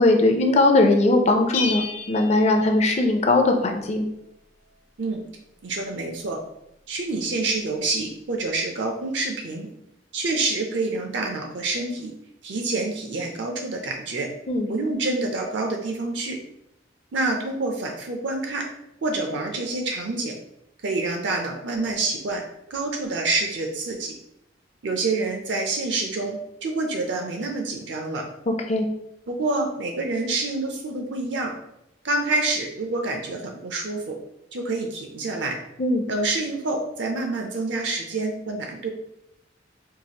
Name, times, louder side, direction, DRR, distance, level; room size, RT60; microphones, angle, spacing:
voice 1, 0.0-4.1 14.5-14.7 28.7-28.8 35.8-36.0, left 2 dB, 35° left, 4 dB, 0.5 m, -19 dB
Bell, 1.5-3.4, left 4 dB, 90° left, 0.5 m, -32 dB
voice 2, 5.6-6.4 6.9-9.7 10.1-12.1 12.4-14.3 14.7-16.4 17.1-18.6 19.0-20.4 20.8-22.4 22.7-24.1 24.8-28.2 29.3-31.5 32.0-34.2 34.5-35.5 36.1-38.9, right 3 dB, 65° right, 2 dB, 0.5 m, -27 dB
4.6 x 2.4 x 2.8 m, 0.84 s
head